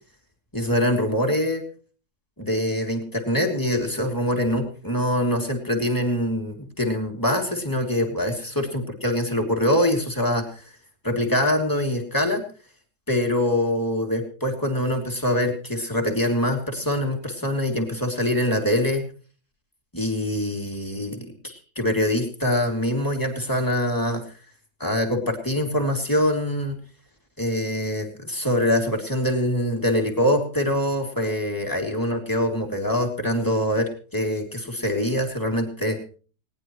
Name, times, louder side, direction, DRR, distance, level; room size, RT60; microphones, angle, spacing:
voice 1, 0.5-1.6 2.4-8.7 9.0-10.4 11.0-12.4 13.1-19.0 19.9-24.2 24.8-26.8 27.4-36.0, left 1 dB, 10° left, 2 dB, 2.9 m, -24 dB
20.0 x 18.5 x 3.2 m, 0.40 s
omnidirectional pair, 1.7 m